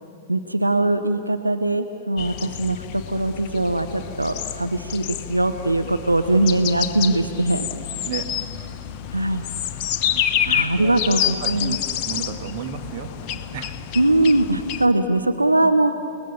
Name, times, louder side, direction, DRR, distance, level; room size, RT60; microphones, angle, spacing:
voice 1, 0.3-7.7 9.1-9.4 10.1-11.8 14.0-15.9, right 2 dB, 85° right, 8 dB, 0.8 m, -21 dB
sound 1, 2.2-14.9, left 10 dB, 40° left, 1.0 m, -28 dB
voice 2, 10.1-10.9 11.4-11.8 12.0-13.7, right 7 dB, 45° right, 6 dB, 1.7 m, -33 dB
29.0 x 19.5 x 6.8 m, 2.7 s
figure-of-eight pair, 100°, 0 cm